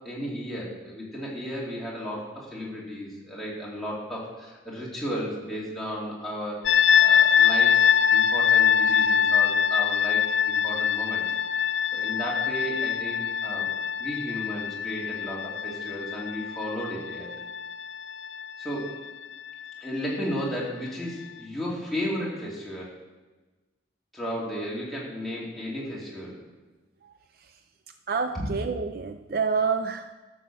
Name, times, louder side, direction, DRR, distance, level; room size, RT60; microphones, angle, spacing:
voice 1, 0.0-6.6 7.0-7.8 8.1-11.3 11.9-13.7 14.0-17.3 18.6-18.9 19.8-23.0 24.1-26.4 28.3-28.5, equal, ahead, -6 dB, 2.7 m, -34 dB
sound 1, 6.7-19.5, left 8 dB, 65° left, 0.4 m, -23 dB
voice 2, 28.1-30.1, right 5 dB, 50° right, 8 dB, 0.4 m, -28 dB
12.5 x 6.3 x 7.3 m, 1.2 s
head